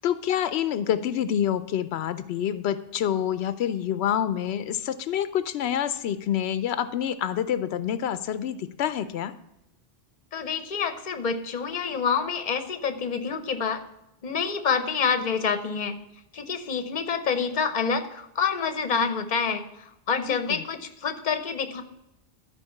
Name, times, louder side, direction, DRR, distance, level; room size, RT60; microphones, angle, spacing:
voice 1, 0.0-9.3 20.3-20.6, left 10 dB, 90° left, 13 dB, 0.8 m, -27 dB
voice 2, 10.3-13.8 14.2-16.0 16.3-19.6 20.1-21.8, left 6 dB, 50° left, 10 dB, 0.9 m, -27 dB
12.5 x 5.0 x 5.7 m, 0.88 s
omnidirectional pair, 1.1 m